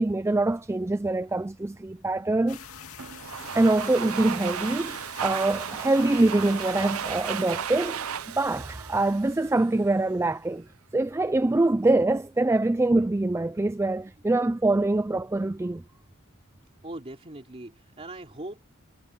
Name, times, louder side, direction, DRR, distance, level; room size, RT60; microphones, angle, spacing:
voice 1, 0.0-2.6 3.5-10.7 10.9-15.8, right 2 dB, 10° right, 0.4 m, -24 dB
sound 1, 2.5-9.6, left 7 dB, 90° left, 2.4 m, -46 dB
Domestic sounds home sounds, 3.0-9.9, right 8 dB, 85° right, 0.7 m, -34 dB
voice 2, 16.8-18.8, right 1 dB, 30° right, 2.9 m, -40 dB
head